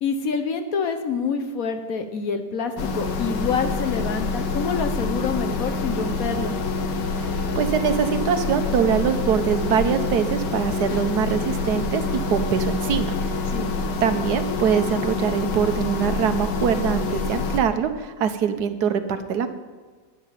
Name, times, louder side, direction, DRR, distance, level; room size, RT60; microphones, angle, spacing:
voice 1, 0.0-6.5 13.5-13.7, left 5 dB, 60° left, 8 dB, 1.2 m, -27 dB
sound 1, 2.8-17.6, left 3 dB, 90° left, 1.7 m, -26 dB
voice 2, 7.6-12.0 12.3-13.1 14.0-19.5, right 7 dB, 70° right, 9 dB, 1.4 m, -23 dB
11.5 x 6.9 x 9.1 m, 1.4 s
omnidirectional pair, 1.8 m